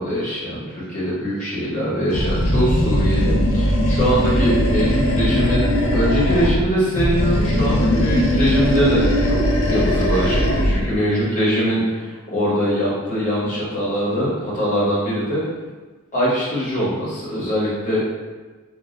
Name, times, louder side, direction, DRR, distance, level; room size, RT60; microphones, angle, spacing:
voice 1, 0.0-5.7 5.9-9.4 9.7-15.4 16.1-18.0, equal, 35° left, -8 dB, 1.1 m, -22 dB
Animal, 2.1-6.6 6.9-10.8, equal, 70° left, 0.5 m, -19 dB
2.4 x 2.1 x 3.7 m, 1.3 s
head